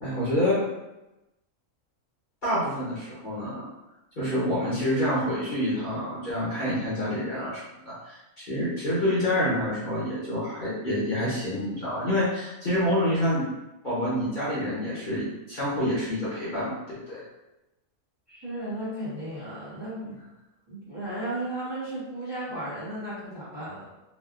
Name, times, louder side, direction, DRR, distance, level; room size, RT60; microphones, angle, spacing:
voice 1, 0.0-0.6 2.4-3.7 4.2-13.4 13.8-17.2, left 1 dB, 45° left, -10 dB, 0.9 m, -27 dB
voice 2, 18.3-20.2 20.7-23.9, right 1 dB, 20° right, -12 dB, 0.8 m, -34 dB
2.7 x 2.3 x 2.4 m, 0.98 s
omnidirectional pair, 1.4 m